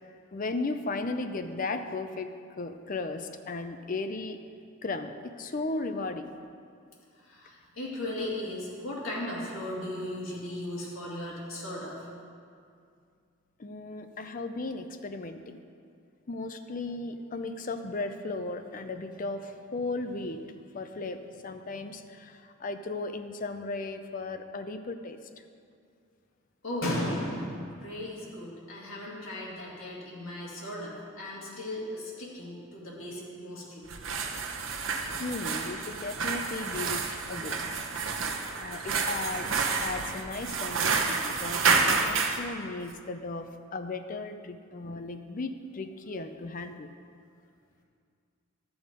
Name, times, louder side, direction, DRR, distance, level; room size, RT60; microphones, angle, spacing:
voice 1, 0.3-4.4 4.8-6.3 13.6-15.6 16.3-20.4 20.7-25.2 35.2-37.6 37.9-38.1 38.6-39.5 39.8-46.9, left 3 dB, 40° left, 8 dB, 0.5 m, -36 dB
voice 2, 7.2-12.1 26.6-33.8, left 1 dB, 85° left, -5 dB, 2.4 m, -36 dB
sound 1, 33.8-42.4, right 4 dB, 70° right, 0.9 m, -29 dB
11.5 x 7.0 x 5.2 m, 2.3 s
head